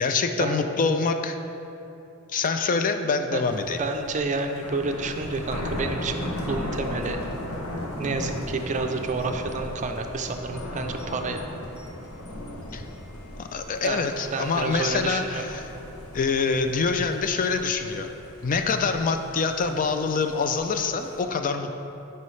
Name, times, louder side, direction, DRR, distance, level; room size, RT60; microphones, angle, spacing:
voice 1, 0.0-1.4 2.3-3.8 12.7-12.8 13.4-15.6 16.1-18.1 18.4-21.8, left 4 dB, 40° left, 7 dB, 0.3 m, -25 dB
Thunder, 3.4-21.2, left 1 dB, 75° left, 0.9 m, -37 dB
voice 2, 3.8-7.2 8.0-11.5 13.8-15.4, right 3 dB, 35° right, 5 dB, 0.4 m, -29 dB
9.4 x 5.6 x 3.2 m, 2.9 s
head